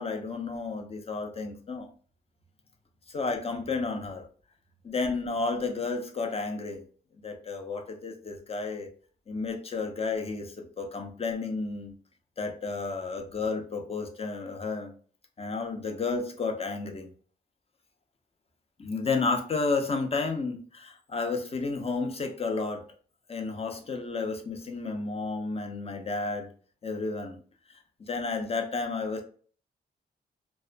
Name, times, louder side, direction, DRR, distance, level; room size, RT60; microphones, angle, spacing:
voice 1, 0.0-1.9 3.1-4.3 4.8-6.8 7.2-8.9 9.3-11.9 12.4-14.9 15.4-17.1 18.8-22.8 23.3-26.5 26.8-27.4 27.7-27.8 28.1-29.2, left 4 dB, 35° left, 5 dB, 0.5 m, -32 dB
2.3 x 2.1 x 2.4 m, 0.43 s
cardioid pair, 75°, 18 cm